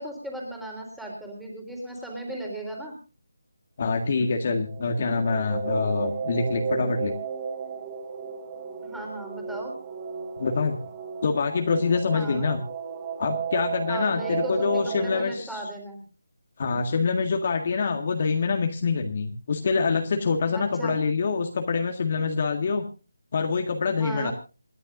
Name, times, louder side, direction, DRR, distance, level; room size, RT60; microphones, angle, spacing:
voice 1, 0.0-2.9 8.8-9.8 12.1-12.5 13.9-16.0 20.5-20.9 24.0-24.3, right 1 dB, ahead, 0 dB, 3.6 m, -36 dB
voice 2, 3.8-7.1 10.4-10.8 11.2-12.6 13.2-15.6 16.6-22.8 23.3-24.3, left 4 dB, 40° left, 4 dB, 1.9 m, -25 dB
sound 1, 4.6-15.2, right 6 dB, 25° right, 4.1 m, -34 dB
28.0 x 11.0 x 2.6 m, 0.33 s
figure-of-eight pair, 170°, 0 cm